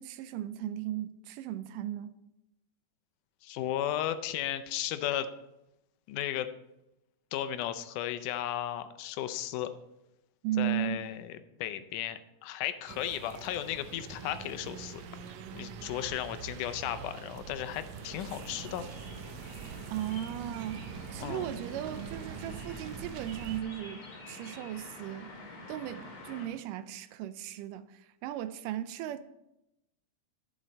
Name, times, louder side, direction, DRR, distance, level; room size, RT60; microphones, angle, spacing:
voice 1, 0.0-2.2 10.4-11.1 19.9-20.9 21.1-25.3 25.7-29.2, right 12 dB, 90° right, 2.2 m, -36 dB
voice 2, 3.4-5.3 6.1-6.5 7.3-9.7 10.6-11.3 11.6-18.9 21.2-21.5, left 11 dB, 80° left, 2.1 m, -35 dB
sound 1, 12.9-23.6, right 7 dB, 70° right, 1.8 m, -44 dB
sound 2, 17.9-26.5, left 1 dB, 45° left, 3.2 m, -48 dB
11.0 x 7.7 x 4.0 m
omnidirectional pair, 3.7 m